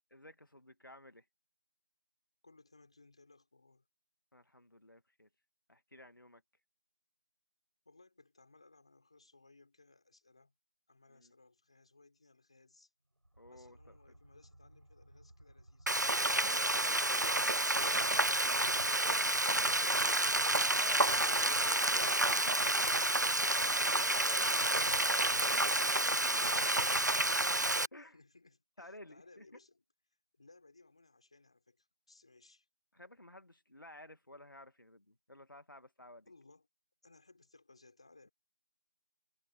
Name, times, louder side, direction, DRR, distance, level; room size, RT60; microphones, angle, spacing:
voice 1, 0.1-1.2 4.3-5.3 5.7-6.4 11.1-11.3 13.4-13.9 16.2-16.7 18.1-18.3 20.5-22.5 23.9-26.9 27.1-27.3 27.9-28.2 28.8-29.4 32.9-36.3, left 1 dB, 55° left, 2.0 m, -53 dB
voice 2, 2.4-3.9 7.9-10.5 10.9-12.9 13.5-17.2 27.1-29.8 30.3-32.7 36.3-36.7 37.0-38.3, left 3 dB, 15° left, 5.6 m, -63 dB
sound 1, 13.1-16.9, right 1 dB, 65° right, 4.7 m, -61 dB
Frying (food), 15.9-27.9, right 1 dB, 45° right, 0.4 m, -30 dB
figure-of-eight pair, 180°, 13 cm